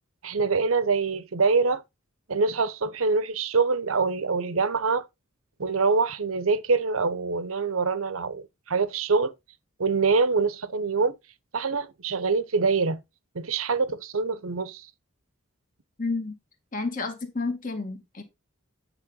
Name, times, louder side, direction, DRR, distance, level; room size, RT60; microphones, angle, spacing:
voice 1, 0.2-1.8 2.3-5.0 5.6-9.3 9.8-11.1 11.5-13.0 13.3-14.9, right 4 dB, 80° right, 0.9 m, -25 dB
voice 2, 16.0-16.3 16.7-18.2, left 3 dB, 40° left, 1.8 m, -30 dB
8.9 x 5.5 x 3.9 m
head